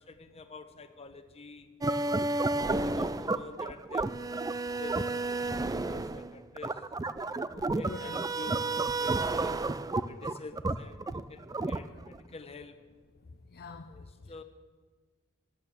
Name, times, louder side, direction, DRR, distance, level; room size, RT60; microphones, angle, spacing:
voice 1, 0.1-1.7 2.3-2.6 3.0-4.1 4.8-6.7 7.5-9.6 10.0-11.0 11.3-12.7 13.9-14.4, left 4 dB, 30° left, 8 dB, 1.1 m, -48 dB
sound 1, 1.8-12.2, right 3 dB, 15° right, 0.4 m, -31 dB
voice 2, 2.8-3.2 7.8-8.2 13.5-13.9 14.2-14.4, left 4 dB, 45° left, 6 dB, 0.6 m, -45 dB
13.5 x 11.0 x 7.3 m, 1.5 s
head